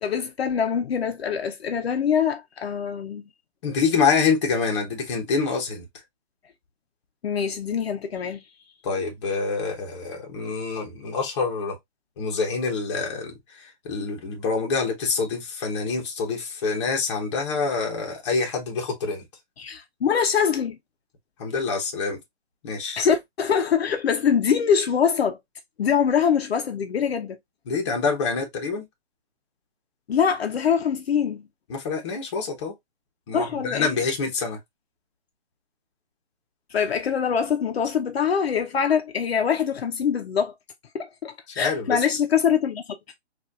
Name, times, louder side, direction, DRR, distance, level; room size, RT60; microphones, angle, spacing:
voice 1, 0.0-3.2 7.2-8.4 19.6-20.8 23.0-25.4 25.8-27.4 30.1-31.5 33.3-33.9 36.7-40.5 40.9-42.8, left 7 dB, 65° left, 0.7 m, -23 dB
voice 2, 3.6-5.8 8.8-11.8 12.2-19.2 21.4-22.2 22.6-23.1 27.7-28.8 31.7-32.7 33.3-34.6 41.6-42.0, left 4 dB, 25° left, 1.0 m, -26 dB
4.1 x 2.5 x 2.4 m
hypercardioid pair, 160°, 33 cm